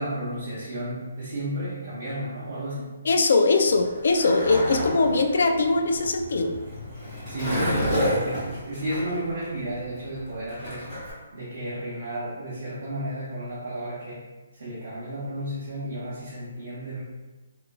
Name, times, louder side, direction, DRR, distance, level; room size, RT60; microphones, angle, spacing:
voice 1, 0.0-2.9 7.3-11.0 11.3-14.3 14.5-17.0, right 1 dB, 45° right, -10 dB, 0.9 m, -33 dB
voice 2, 3.0-6.5, left 3 dB, 60° left, 5 dB, 0.3 m, -21 dB
Skateboard, 3.6-11.1, equal, 15° left, 1.2 m, -30 dB
3.0 x 2.4 x 2.2 m, 1.2 s
hypercardioid pair, 170°, 0 cm